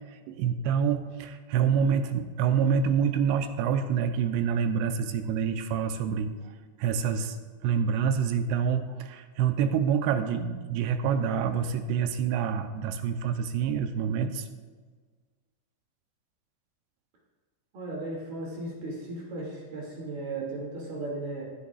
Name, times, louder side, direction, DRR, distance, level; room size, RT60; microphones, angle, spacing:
voice 1, 0.3-6.3 6.8-7.4 7.6-14.5, right 7 dB, 85° right, 8 dB, 2.7 m, -27 dB
voice 2, 17.7-21.4, right 2 dB, 55° right, -3 dB, 3.8 m, -36 dB
20.0 x 10.5 x 2.4 m, 1.5 s
omnidirectional pair, 4.9 m